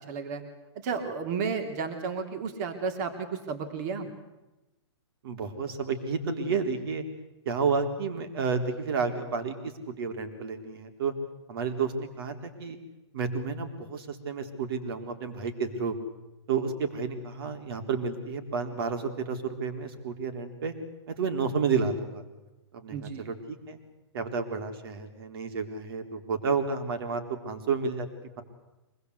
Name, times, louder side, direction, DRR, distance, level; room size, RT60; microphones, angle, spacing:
voice 1, 0.1-0.4 0.7-4.1 22.9-23.2, right 5 dB, 40° right, 6 dB, 3.4 m, -32 dB
voice 2, 5.2-7.0 7.5-11.1 11.5-12.8 13.1-16.0 16.5-20.7 21.1-22.2 22.7-23.8 24.1-28.1, right 5 dB, 55° right, 7 dB, 3.9 m, -31 dB
25.0 x 20.0 x 8.3 m, 1.0 s
hypercardioid pair, 150°, 15 cm